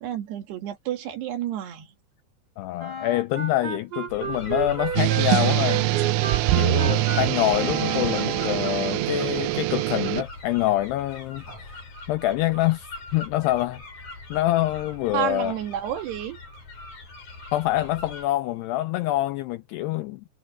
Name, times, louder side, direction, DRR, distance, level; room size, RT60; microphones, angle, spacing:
voice 1, 0.0-1.9 7.1-7.3 15.1-16.4, right 11 dB, 65° right, 3.8 m, -30 dB
voice 2, 2.6-5.8 6.5-11.8 12.1-13.8 14.3-15.5 17.5-20.3, left 15 dB, 85° left, 2.3 m, -26 dB
Wind instrument woodwind instrument, 2.8-8.8, right 4 dB, 20° right, 3.5 m, -33 dB
sound 1, 4.1-18.3, left 2 dB, 40° left, 8.5 m, -41 dB
sound 2, 4.9-10.2, right 16 dB, 85° right, 3.1 m, -24 dB
omnidirectional pair, 5.5 m